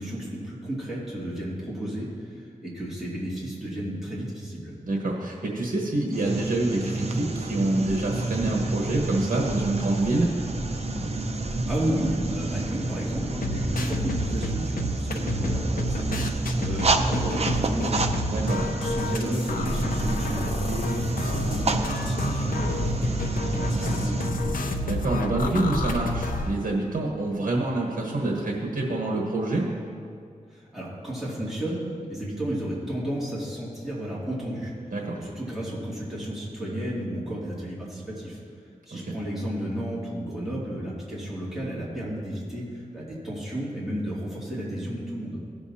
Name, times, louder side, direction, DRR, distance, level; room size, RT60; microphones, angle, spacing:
voice 1, 0.0-4.7 11.4-18.1 18.5-24.6 30.5-31.8 32.1-34.7 35.1-38.4 38.9-45.4, right 1 dB, ahead, -8 dB, 2.5 m, -33 dB
voice 2, 4.8-10.3 18.3-18.6 24.8-29.7 34.9-35.2 39.0-39.1, right 2 dB, 70° right, -1 dB, 1.3 m, -26 dB
sound 1, 6.1-24.3, right 2 dB, 50° right, 0.6 m, -29 dB
sound 2, 7.8-19.2, equal, 30° left, 1.6 m, -38 dB
sound 3, 13.2-26.5, left 1 dB, 80° left, 0.7 m, -29 dB
16.5 x 7.0 x 2.8 m, 2.3 s
wide cardioid pair, 100°, 14 cm